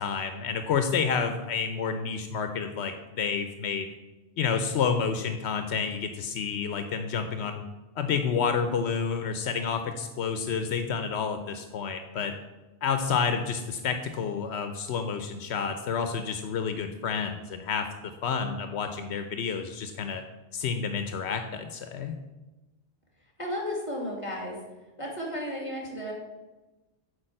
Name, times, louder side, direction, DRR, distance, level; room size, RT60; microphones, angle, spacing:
voice 1, 0.0-3.9 4.4-7.6 8.0-12.3 12.8-20.2 20.5-22.2, left 6 dB, 80° left, 7 dB, 0.9 m, -29 dB
voice 2, 23.4-24.6 25.0-26.1, equal, 30° left, 0 dB, 2.6 m, -33 dB
8.6 x 4.7 x 7.5 m, 1.1 s
omnidirectional pair, 1.1 m